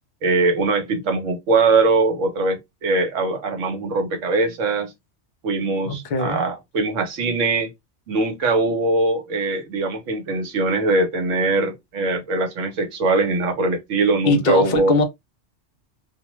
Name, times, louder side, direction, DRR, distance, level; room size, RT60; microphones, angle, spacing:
voice 1, 0.2-4.9 5.4-7.7 8.1-15.0, right 3 dB, 80° right, 1.1 m, -21 dB
voice 2, 5.9-6.4 14.2-15.0, left 3 dB, 60° left, 0.5 m, -20 dB
2.4 x 2.1 x 2.9 m
omnidirectional pair, 1.3 m